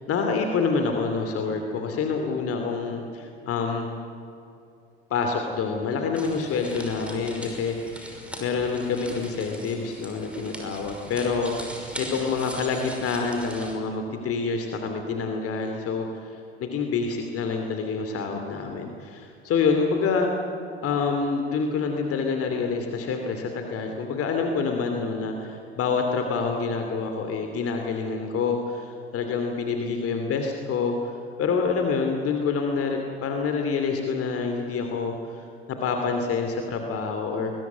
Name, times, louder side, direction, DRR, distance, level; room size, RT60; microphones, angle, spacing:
voice 1, 0.0-3.9 5.1-20.3 20.8-37.5, left 5 dB, 45° left, 4 dB, 2.8 m, -27 dB
sound 1, 6.1-13.7, equal, 5° right, 5.8 m, -40 dB
22.0 x 21.5 x 9.5 m, 2.7 s
figure-of-eight pair, 65°, 32 cm